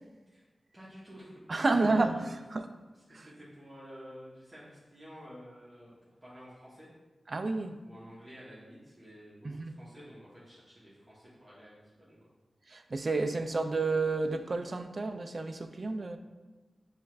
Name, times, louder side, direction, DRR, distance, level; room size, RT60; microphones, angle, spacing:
voice 1, 0.7-1.4 1.7-2.3 3.1-5.9 6.2-6.9 7.8-12.2, equal, 25° right, -9 dB, 1.1 m, -50 dB
voice 2, 1.5-2.2 2.5-2.7 3.1-3.3 7.3-7.8 9.4-9.7 12.7-16.2, right 3 dB, 50° right, 8 dB, 0.3 m, -30 dB
5.4 x 2.4 x 3.2 m, 1.2 s
wide cardioid pair, 65°, 0 cm